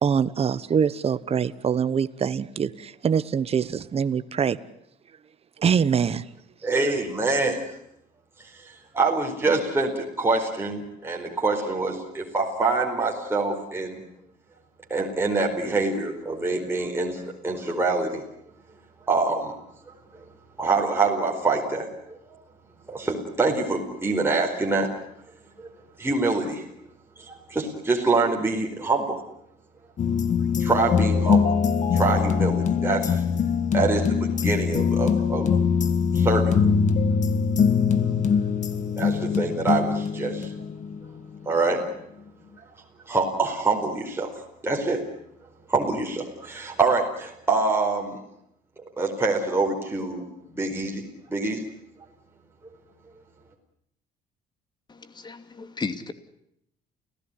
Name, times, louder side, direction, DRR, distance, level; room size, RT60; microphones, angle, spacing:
voice 1, 0.0-4.6 5.6-6.2, right 7 dB, 35° right, 14 dB, 1.2 m, -24 dB
voice 2, 6.6-7.6 8.4-9.9 10.2-14.0 14.9-18.2 19.1-19.5 20.1-20.2 20.6-22.4 22.9-24.9 25.6-25.7 26.0-26.7 27.2-29.2 30.6-31.5 31.9-33.2 33.7-35.5 36.1-36.5 39.0-40.5 41.4-41.8 43.1-45.0 45.7-48.2 49.0-50.2 50.5-51.6, right 3 dB, 15° right, 0 dB, 4.7 m, -25 dB
sound 1, 30.0-41.1 41.3-41.4, left 6 dB, 45° left, 1.9 m, -23 dB
voice 3, 54.9-56.1, left 4 dB, 25° left, 11 dB, 2.5 m, -34 dB
29.5 x 16.5 x 9.9 m, 0.77 s
cardioid pair, 110°, 17 cm